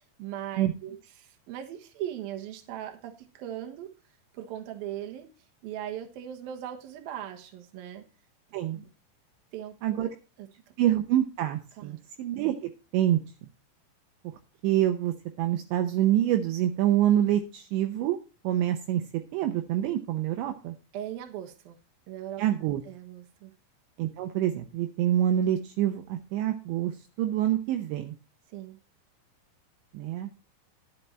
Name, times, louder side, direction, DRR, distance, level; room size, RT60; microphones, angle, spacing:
voice 1, 0.0-3.9 4.3-5.3 5.6-8.0 8.7-8.9 9.5-10.1 10.4-10.5 11.7-12.0 20.9-21.8 22.1-22.4 22.9-23.5 28.5-28.8, right 11 dB, 65° right, 4 dB, 2.8 m, -39 dB
voice 2, 10.8-13.2 14.6-18.2 18.4-19.0 19.3-20.7 22.4-22.8 24.0-28.2 29.9-30.3, right 12 dB, 80° right, 5 dB, 2.9 m, -26 dB
11.5 x 7.4 x 4.3 m, 0.32 s
omnidirectional pair, 5.5 m